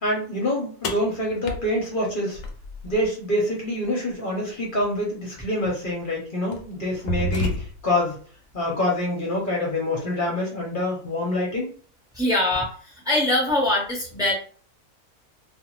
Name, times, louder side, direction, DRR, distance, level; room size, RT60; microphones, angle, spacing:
voice 1, 0.0-2.4 2.8-8.2 8.5-11.7, left 1 dB, 40° left, -3 dB, 0.9 m, -26 dB
sound 1, 0.8-3.0 4.9-5.0 5.8-6.0 6.5-8.0, left 2 dB, 70° left, 1.0 m, -30 dB
voice 2, 12.1-12.7 13.0-14.3, left 1 dB, 5° right, -4 dB, 0.8 m, -22 dB
2.5 x 2.4 x 3.1 m, 0.42 s
omnidirectional pair, 1.6 m